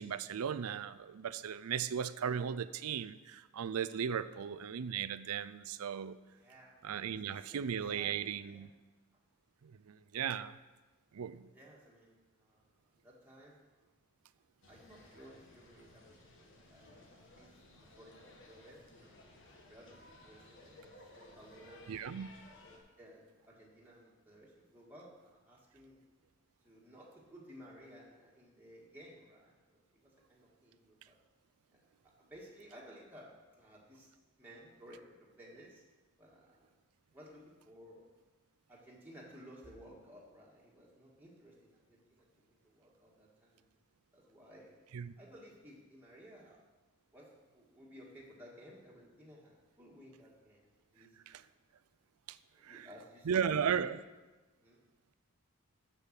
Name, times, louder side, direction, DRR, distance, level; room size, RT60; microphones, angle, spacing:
voice 1, 0.0-6.2 6.8-8.7 9.6-10.6 11.1-11.5 21.9-22.3 44.9-45.1 52.3-52.4 52.6-52.9 53.3-54.0, right 7 dB, 80° right, 0.4 m, -36 dB
voice 2, 6.3-6.8 7.1-8.7 11.5-12.6 13.0-13.9 14.7-16.0 16.4-16.8 17.4-19.3 19.7-20.8 21.1-22.4 23.0-26.0 26.6-31.2 31.7-31.8 32.2-33.3 33.6-34.1 34.4-35.8 36.2-36.7 37.1-38.1 38.7-43.6 44.1-44.7 45.2-46.6 47.1-51.4 52.5-53.9 54.6-54.8, equal, 10° right, 1.8 m, -57 dB
sound 1, 14.6-22.8, left 2 dB, 55° left, 1.5 m, -58 dB
7.2 x 6.9 x 7.5 m
head